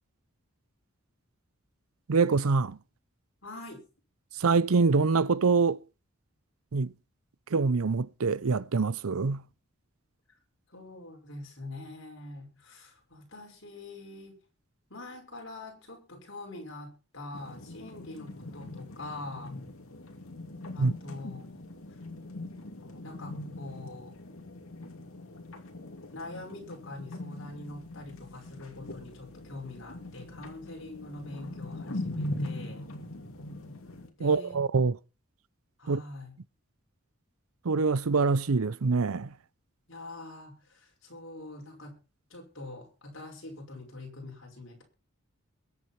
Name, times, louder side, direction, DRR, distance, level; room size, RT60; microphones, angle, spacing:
voice 1, 2.1-2.8 4.3-5.8 6.7-6.9 7.5-9.4 20.8-20.9 34.2-35.0 35.9-36.0 37.6-39.3, right 4 dB, 80° right, 0.6 m, -25 dB
voice 2, 3.4-3.8 10.7-14.4 14.9-19.6 20.7-21.4 21.9-22.0 23.0-24.1 26.1-32.9 34.2-34.6 35.8-36.3 39.9-42.0 42.3-44.8, left 2 dB, 60° left, 5.8 m, -44 dB
sound 1, 17.3-34.1, left 1 dB, 75° left, 2.8 m, -41 dB
22.0 x 8.0 x 4.4 m
head